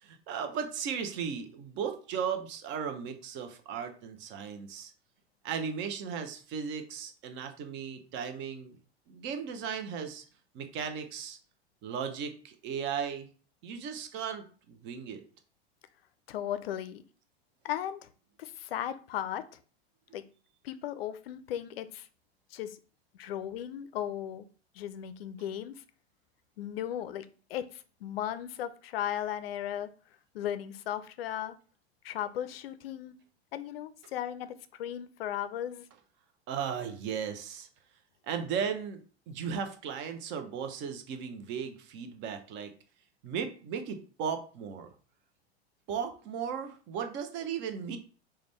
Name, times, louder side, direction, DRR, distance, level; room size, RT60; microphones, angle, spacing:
voice 1, 0.0-4.9 5.4-8.8 9.1-10.2 10.5-11.4 11.8-13.3 13.6-15.2 36.5-37.7 38.3-39.0 39.3-42.7 43.2-44.9 45.9-48.0, right 7 dB, 35° right, 7 dB, 0.6 m, -36 dB
voice 2, 16.3-17.0 17.6-18.1 18.4-19.4 20.1-20.3 20.6-22.1 22.5-22.8 23.1-24.5 24.7-25.8 26.6-29.9 30.3-31.6 32.0-33.1 33.5-35.9, left 11 dB, 65° left, 12 dB, 0.5 m, -36 dB
4.9 x 2.2 x 3.1 m, 0.40 s
figure-of-eight pair, 85°, 32 cm